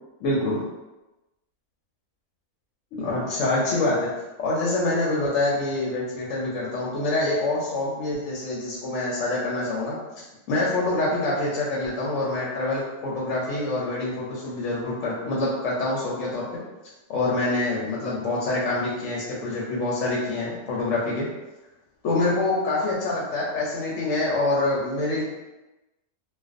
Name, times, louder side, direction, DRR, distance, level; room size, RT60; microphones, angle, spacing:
voice 1, 0.2-0.6 3.0-4.1 4.4-16.6 17.1-21.3 22.0-25.2, left 2 dB, 70° left, -5 dB, 0.9 m, -26 dB
2.4 x 2.2 x 2.4 m, 1.0 s
omnidirectional pair, 1.6 m